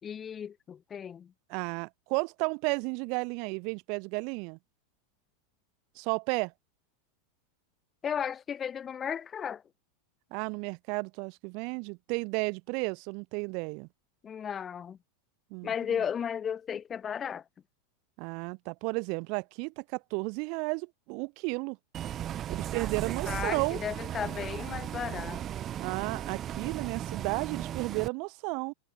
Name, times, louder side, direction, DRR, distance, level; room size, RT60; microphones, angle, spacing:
voice 1, 0.0-1.3 8.0-9.6 14.2-15.0 15.6-17.4 23.3-25.4, left 8 dB, 30° left, 4.0 m, -34 dB
voice 2, 1.5-4.6 6.0-6.5 10.3-13.9 15.5-15.7 18.2-21.8 22.5-23.8 25.8-28.7, right 34 dB, 55° right, 4.3 m, -33 dB
Bus, 21.9-28.1, right 11 dB, 35° right, 2.7 m, -36 dB
hypercardioid pair, 100°, 0 cm